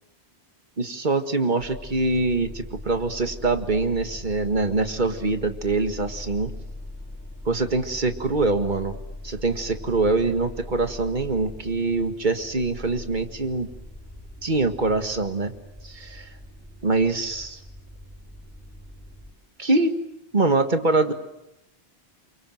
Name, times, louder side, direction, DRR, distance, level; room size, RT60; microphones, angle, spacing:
voice 1, 0.8-6.5 7.5-9.0 9.2-13.7 14.4-15.5 15.8-16.3 16.8-17.6 19.6-20.0 20.3-21.1, right 3 dB, 45° right, 7 dB, 2.0 m, -24 dB
sound 1, 1.6-19.3, left 1 dB, 15° left, 5.6 m, -40 dB
28.5 x 24.5 x 7.8 m, 0.84 s
omnidirectional pair, 1.1 m